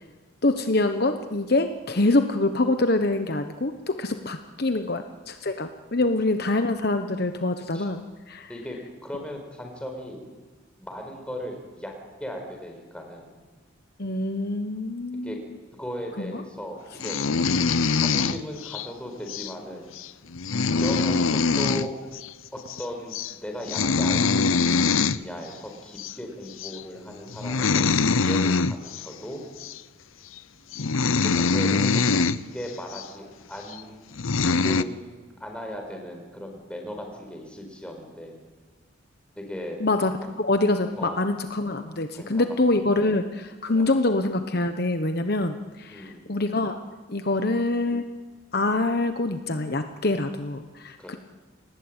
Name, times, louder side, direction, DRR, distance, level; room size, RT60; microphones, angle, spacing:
voice 1, 0.4-8.5 14.0-15.4 16.2-16.4 39.8-46.8 47.1-48.0 48.5-51.2, left 2 dB, 50° left, 8 dB, 1.1 m, -25 dB
voice 2, 8.5-10.3 10.8-11.9 12.2-13.3 15.2-15.4 15.8-17.2 18.0-19.9 20.7-21.9 22.5-29.4 31.2-34.1 34.6-38.4 39.4-39.8 41.0-41.2 42.1-42.5 43.0-43.2 43.7-43.9 45.9-46.3 47.3-47.5 51.0-51.2, equal, 5° left, 3 dB, 4.8 m, -37 dB
sound 1, 17.0-18.9 19.3-19.5 20.0-20.1 20.3-21.9 22.1-22.3 22.6-22.8 23.1-23.3 23.6-25.2 26.0-26.1 26.6-26.8 27.3-29.1 29.6-29.8 30.4-30.5 30.7-32.4 32.9-33.0 33.7-33.8 34.2-34.8, left 4 dB, 80° left, 0.8 m, -23 dB
29.5 x 19.5 x 9.0 m, 1.3 s
head